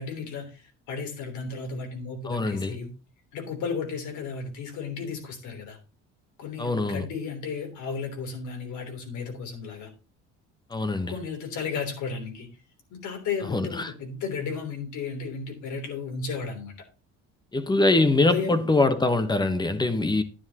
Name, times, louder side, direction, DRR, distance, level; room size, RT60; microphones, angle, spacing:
voice 1, 0.0-2.9 3.3-5.8 6.4-9.9 11.1-12.5 12.9-16.7 17.8-18.6, left 5 dB, 75° left, 3.4 m, -34 dB
voice 2, 2.3-2.7 6.6-7.1 10.7-11.1 13.5-13.9 17.5-20.2, left 2 dB, 15° left, 1.0 m, -23 dB
10.5 x 9.9 x 2.9 m
cardioid pair, 120°, 30 cm